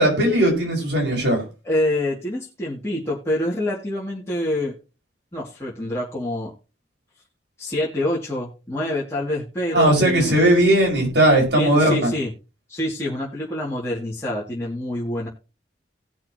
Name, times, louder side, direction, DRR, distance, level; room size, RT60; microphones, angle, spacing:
voice 1, 0.0-1.4 9.7-12.1, right 1 dB, 75° right, 0 dB, 5.1 m, -18 dB
voice 2, 1.6-4.7 5.3-6.5 7.6-10.4 11.6-12.3 12.7-15.3, left 1 dB, 15° left, -7 dB, 2.4 m, -26 dB
18.5 x 6.3 x 3.0 m, 0.31 s
head